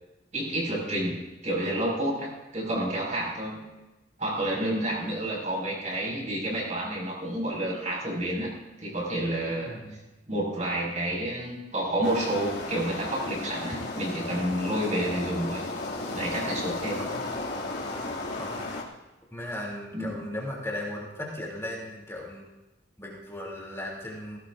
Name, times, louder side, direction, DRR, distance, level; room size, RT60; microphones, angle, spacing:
voice 1, 0.3-3.7 4.2-8.5 8.8-9.7 10.3-15.6 16.1-17.0 19.9-20.2, right 1 dB, 40° right, -3 dB, 5.9 m, -30 dB
voice 2, 9.7-10.0 17.0-17.3 18.4-18.7 19.3-22.5 23.0-24.4, left 1 dB, 15° left, -4 dB, 3.3 m, -37 dB
sound 1, 12.0-18.8, left 2 dB, 65° left, 2.7 m, -34 dB
18.5 x 17.0 x 2.7 m, 1.1 s
head